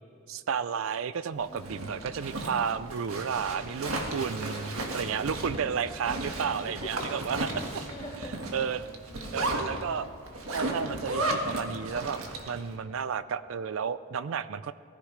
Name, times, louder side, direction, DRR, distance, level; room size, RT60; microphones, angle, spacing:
voice 1, 0.3-7.4 8.5-8.8 9.3-10.1 10.5-14.7, right 7 dB, 70° right, 15 dB, 0.4 m, -32 dB
Zipper (clothing), 1.4-12.6, right 2 dB, 90° right, 1.7 m, -34 dB
voice 2, 1.5-2.0 3.3-4.0 4.4-4.6 4.9-5.6 6.3-7.1 7.5-9.8, equal, 30° left, -4 dB, 2.8 m, -47 dB
19.5 x 14.5 x 3.3 m, 2.7 s
head